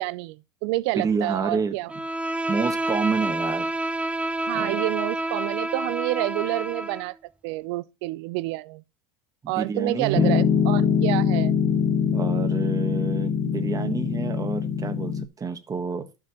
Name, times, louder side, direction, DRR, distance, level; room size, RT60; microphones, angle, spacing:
voice 1, 0.0-1.9 4.5-7.2 7.4-8.8 9.5-11.6, right 20 dB, 70° right, 0.6 m, -28 dB
voice 2, 0.9-1.7 2.5-3.7 4.5-4.8 9.4-10.4 12.1-16.1, right 5 dB, 25° right, 1.4 m, -29 dB
Bowed string instrument, 1.9-7.1, right 2 dB, 10° right, 0.5 m, -28 dB
Piano, 10.1-15.2, left 7 dB, 45° left, 1.3 m, -23 dB
12.5 x 6.0 x 3.0 m
supercardioid pair, 100°, 15 cm